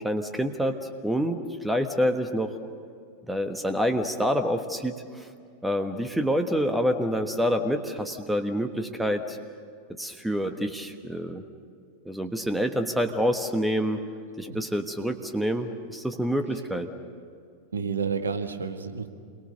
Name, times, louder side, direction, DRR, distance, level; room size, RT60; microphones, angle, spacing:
voice 1, 0.0-2.6 3.3-5.3 5.6-9.4 10.0-11.4 12.0-14.1 14.4-16.9, equal, 5° right, 7 dB, 1.4 m, -27 dB
voice 2, 17.7-19.1, right 6 dB, 70° right, 6 dB, 1.6 m, -30 dB
28.5 x 22.5 x 6.7 m, 2.2 s
figure-of-eight pair, 90°, 0 cm